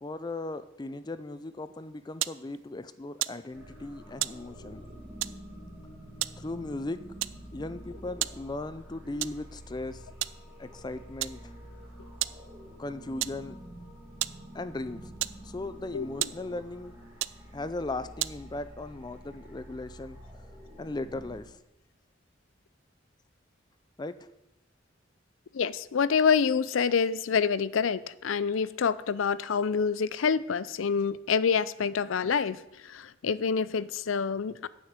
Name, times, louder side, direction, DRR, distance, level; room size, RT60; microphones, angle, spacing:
voice 1, 0.0-4.9 6.4-7.0 7.5-10.1 10.6-11.5 12.8-13.6 14.5-15.1 15.4-17.1 17.5-20.2 20.8-21.6 24.0-24.3, left 2 dB, 20° left, 13 dB, 0.4 m, -37 dB
sound 1, 1.8-18.7, right 16 dB, 70° right, 0.3 m, -39 dB
sound 2, 3.5-21.4, equal, 10° right, 1.9 m, -48 dB
voice 2, 25.5-34.7, left 6 dB, 85° left, 18 dB, 0.5 m, -27 dB
9.2 x 6.4 x 8.1 m, 0.89 s
head